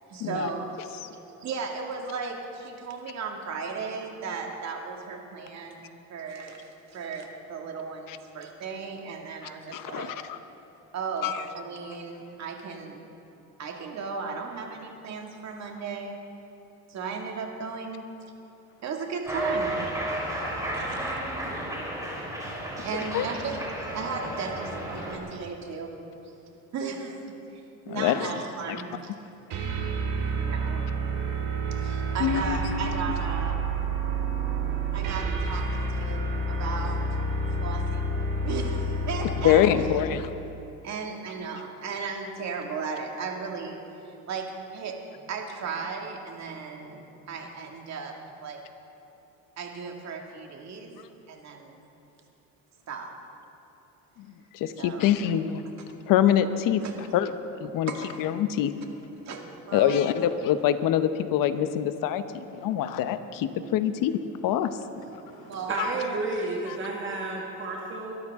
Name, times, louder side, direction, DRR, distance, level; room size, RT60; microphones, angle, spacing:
voice 1, 0.1-0.8 1.3-10.2 10.9-13.0 13.6-16.2 16.9-18.1 18.8-19.7 20.7-21.1 22.8-25.9 26.7-27.2 27.5-29.1 30.3-30.8 31.7-33.6 34.9-37.0 37.6-38.1 38.4-39.9 40.8-43.8 44.0-48.6 49.6-50.9 51.3-51.8 52.9-53.1 54.8-55.1 56.8-57.1 57.9-58.2 59.3-60.3 65.5-65.7 66.0-66.2, right 5 dB, 50° right, 2 dB, 2.3 m, -36 dB
voice 2, 9.7-10.4 11.2-11.4 23.1-23.3 27.9-28.3 32.2-32.9 39.4-40.3 54.5-55.6 56.1-56.8 57.1-57.3 57.6-57.9 58.2-58.7 59.7-64.7 65.8-65.9 66.7-66.8, left 10 dB, 70° left, 11 dB, 1.0 m, -25 dB
Cheering, 19.3-25.2, right 1 dB, 10° right, 3.5 m, -32 dB
sound 1, 29.5-39.8, right 2 dB, 75° right, 2.7 m, -29 dB
voice 3, 65.0-68.1, right 3 dB, 35° right, -2 dB, 1.8 m, -32 dB
23.0 x 13.0 x 3.7 m, 3.0 s
cardioid pair, 110°, 34 cm